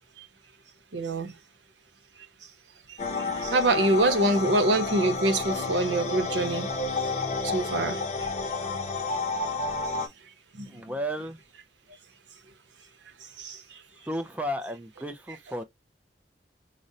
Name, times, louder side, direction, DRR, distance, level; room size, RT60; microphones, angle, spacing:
voice 1, 0.9-1.3 2.9-3.0 3.4-6.8 7.4-8.0 10.5-10.7 13.4-13.8, right 2 dB, 85° right, 0.8 m, -25 dB
sound 1, 3.0-10.1, left 3 dB, 40° left, 0.6 m, -30 dB
voice 2, 10.7-11.4 13.9-15.6, equal, 10° right, 0.3 m, -33 dB
5.0 x 2.0 x 2.6 m
head